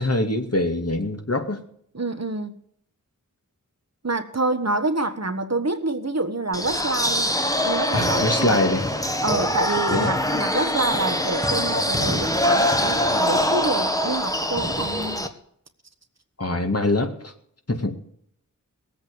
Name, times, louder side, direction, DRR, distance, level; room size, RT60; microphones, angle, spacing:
voice 1, 0.0-1.6 7.9-8.9 9.9-10.1 16.4-17.3 17.7-18.0, left 2 dB, 50° left, 2.3 m, -23 dB
voice 2, 1.9-2.6 4.0-7.3 7.6-8.7 9.2-15.2, right 2 dB, 50° right, 1.4 m, -27 dB
sound 1, 6.5-15.3, left 1 dB, 10° left, 1.5 m, -23 dB
18.5 x 8.2 x 6.9 m
wide cardioid pair, 50°, 33 cm